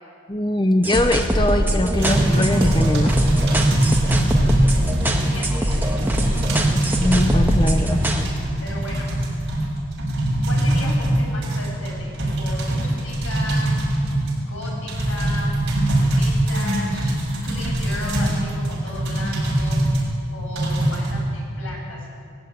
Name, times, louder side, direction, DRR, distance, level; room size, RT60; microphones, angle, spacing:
voice 1, 0.3-3.2 7.0-8.0, left 1 dB, 20° left, 6 dB, 0.8 m, -21 dB
sound 1, 0.8-8.2, equal, 10° right, 1.7 m, -23 dB
sound 2, 2.0-20.1 20.6-21.1, right 1 dB, 55° right, 7.0 m, -22 dB
voice 2, 4.5-6.5 8.6-9.1 10.4-11.9 12.2-13.7 14.5-15.5 16.1-19.8 20.3-22.1, left 1 dB, 80° left, -2 dB, 7.8 m, -36 dB
20.0 x 15.5 x 9.5 m, 2.4 s
head